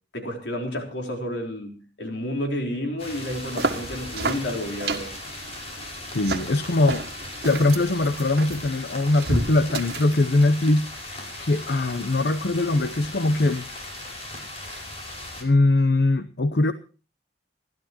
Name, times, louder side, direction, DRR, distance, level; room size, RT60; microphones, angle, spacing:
voice 1, 0.1-5.1, left 1 dB, 85° left, 2 dB, 4.1 m, -31 dB
sound 1, 3.0-15.4, left 1 dB, 35° left, 5.8 m, -38 dB
sound 2, 3.3-10.3, right 2 dB, 65° right, 1.9 m, -32 dB
voice 2, 6.1-7.0 7.4-10.9 11.4-13.7 15.4-16.7, left 2 dB, 70° left, 11 dB, 0.8 m, -21 dB
29.0 x 12.0 x 3.0 m, 0.36 s
head